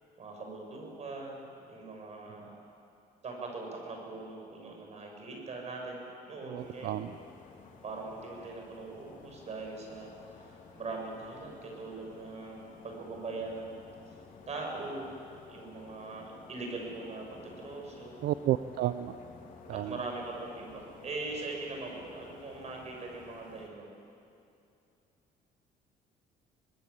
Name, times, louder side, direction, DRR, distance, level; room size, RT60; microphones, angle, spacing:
voice 1, 0.2-2.5 3.2-7.2 7.8-13.8 14.5-15.1 15.5-18.2 19.7-23.9, right 3 dB, 40° right, 1 dB, 7.3 m, -41 dB
voice 2, 6.5-7.1 18.2-19.1 19.7-20.0, right 13 dB, 75° right, 11 dB, 0.7 m, -31 dB
sound 1, 6.6-23.7, left 5 dB, 50° left, 3.8 m, -53 dB
24.5 x 20.5 x 8.5 m, 2.6 s
cardioid pair, 110°, 17 cm